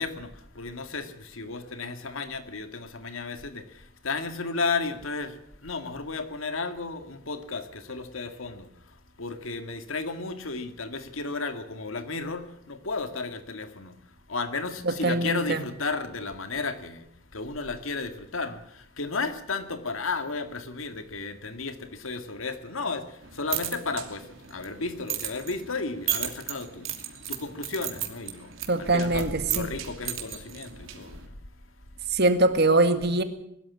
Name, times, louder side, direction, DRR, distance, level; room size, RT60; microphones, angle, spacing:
voice 1, 0.0-8.7 9.2-14.0 14.3-31.4, left 3 dB, 80° left, 9 dB, 2.1 m, -33 dB
voice 2, 14.8-15.6 28.7-29.8 32.1-33.2, right 2 dB, 55° right, 9 dB, 2.0 m, -23 dB
sound 1, 23.2-31.3, right 11 dB, 80° right, 2.9 m, -36 dB
21.5 x 13.0 x 9.8 m, 0.74 s
head